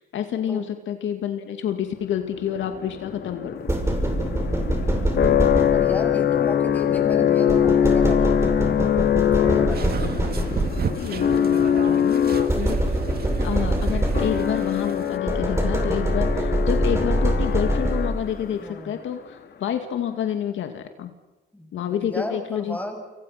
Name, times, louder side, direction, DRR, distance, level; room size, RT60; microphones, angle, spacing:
voice 1, 0.0-3.5 10.9-13.0 13.4-21.1 21.7-22.8, left 9 dB, 75° left, 7 dB, 2.2 m, -28 dB
sound 1, 2.4-18.6, left 9 dB, 55° left, 2.3 m, -23 dB
sound 2, 3.7-6.1 7.5-11.1 12.5-14.7 15.3-18.3, right 1 dB, 15° right, 7.0 m, -24 dB
voice 2, 4.1-4.9 5.7-8.8 9.2-10.1 18.6-19.0 21.5-23.0, left 1 dB, 10° left, 3 dB, 7.1 m, -35 dB
sound 3, 9.7-15.2, right 6 dB, 50° right, 2.2 m, -32 dB
29.5 x 26.5 x 5.9 m, 1.1 s
cardioid pair, 90°, 20 cm